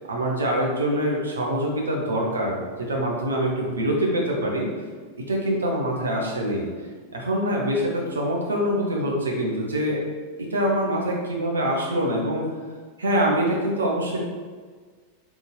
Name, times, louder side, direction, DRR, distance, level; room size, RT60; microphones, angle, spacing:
voice 1, 0.1-2.6 2.9-4.7 5.3-6.7 7.1-10.0 10.4-12.4 13.0-14.2, right 1 dB, 70° right, -1 dB, 1.0 m, -24 dB
4.2 x 3.5 x 3.4 m, 1.5 s
figure-of-eight pair, 90°, 0 cm